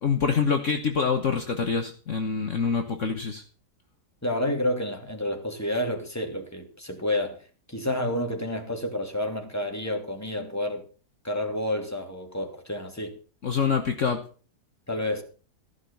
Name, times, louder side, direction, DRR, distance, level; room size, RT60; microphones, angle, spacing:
voice 1, 0.0-3.4 13.4-14.3, left 5 dB, 50° left, 1.5 m, -25 dB
voice 2, 4.2-7.4 7.7-10.8 11.2-13.2 14.9-15.2, left 1 dB, 10° left, 2.7 m, -29 dB
15.5 x 6.0 x 8.3 m
omnidirectional pair, 1.7 m